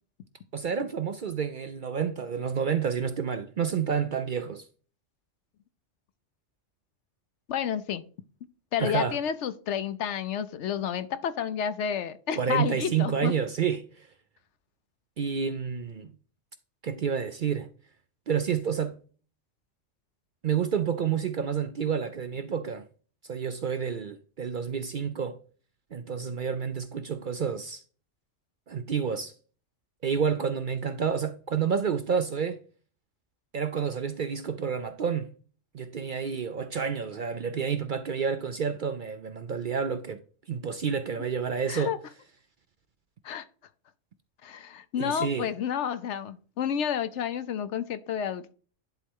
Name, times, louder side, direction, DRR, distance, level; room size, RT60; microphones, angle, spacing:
voice 1, 0.5-4.7 8.8-9.2 12.3-13.9 15.2-16.1 16.8-17.7 18.3-19.0 20.4-22.9 23.3-25.4 25.9-27.8 28.7-29.3 30.0-32.6 33.5-35.3 35.7-40.2 40.5-41.9 45.0-45.5, right 7 dB, 55° right, 0.6 m, -29 dB
voice 2, 7.5-8.0 8.7-13.3 41.7-42.0 43.2-43.4 44.4-48.5, left 8 dB, 70° left, 0.9 m, -30 dB
10.5 x 4.2 x 3.7 m
omnidirectional pair, 1.3 m